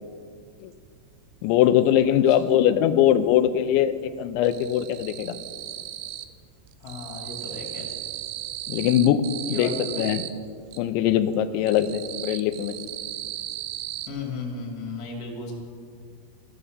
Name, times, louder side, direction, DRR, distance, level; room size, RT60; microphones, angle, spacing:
sound 1, 0.9-1.0 1.3-2.5 2.8-3.5 3.7-6.4 6.7-10.8 11.3-14.1, right 12 dB, 85° right, 2.9 m, -36 dB
voice 1, 1.4-5.4 8.7-9.2 9.5-9.7 10.0-10.2 10.8-12.7, left 11 dB, 90° left, 11 dB, 3.0 m, -21 dB
voice 2, 6.8-7.9 9.5-9.7 14.1-15.5, left 4 dB, 30° left, 0 dB, 1.9 m, -35 dB
14.0 x 10.0 x 6.6 m, 2.1 s
omnidirectional pair, 5.2 m